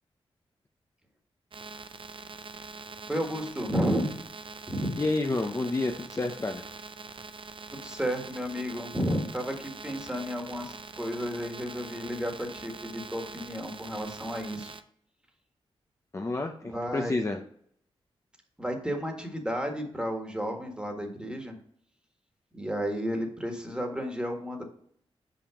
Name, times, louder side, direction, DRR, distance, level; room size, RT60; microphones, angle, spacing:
sound 1, 1.5-14.8, right 4 dB, 55° right, 0.6 m, -44 dB
voice 1, 3.1-4.1 4.7-5.0 7.7-14.7 16.6-17.1 18.6-21.5 22.5-24.6, equal, 10° right, 3 dB, 1.7 m, -32 dB
voice 2, 5.0-6.6 16.1-17.4, left 2 dB, 30° left, 3 dB, 0.7 m, -29 dB
5.8 x 5.1 x 5.0 m, 0.65 s
cardioid pair, 70°, 11 cm